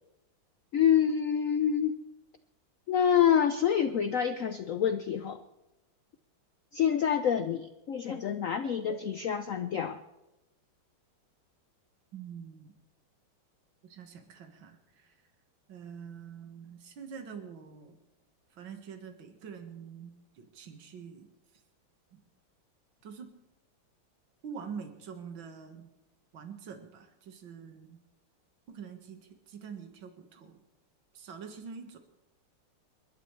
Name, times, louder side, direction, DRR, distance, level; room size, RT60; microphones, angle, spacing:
voice 1, 0.7-2.0 2.9-5.4 6.7-10.0, left 8 dB, 90° left, 9 dB, 0.7 m, -27 dB
voice 2, 12.1-12.7 13.8-15.2 15.7-18.0 18.5-21.3 22.1-22.2 23.0-23.3 24.4-25.9 26.3-28.0 28.7-30.6 31.1-32.0, right 6 dB, 70° right, 5 dB, 2.3 m, -45 dB
28.5 x 12.0 x 3.3 m, 0.96 s
omnidirectional pair, 2.2 m